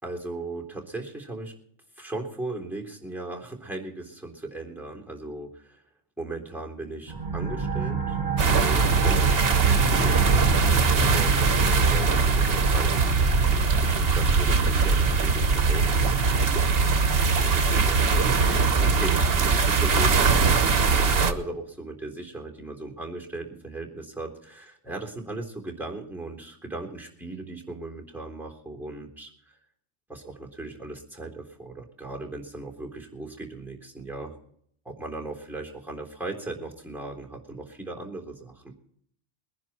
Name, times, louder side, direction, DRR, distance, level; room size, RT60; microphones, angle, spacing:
voice 1, 0.0-1.5 2.0-5.8 6.2-8.2 8.5-17.0 17.3-20.5 21.0-29.3 30.1-34.3 34.9-38.7, right 2 dB, ahead, 0 dB, 3.5 m, -37 dB
sound 1, 7.1-18.4, right 3 dB, 40° right, 1.9 m, -31 dB
sound 2, 8.4-21.3, right 4 dB, 60° right, 1.3 m, -21 dB
21.5 x 10.5 x 4.4 m, 0.65 s
omnidirectional pair, 1.2 m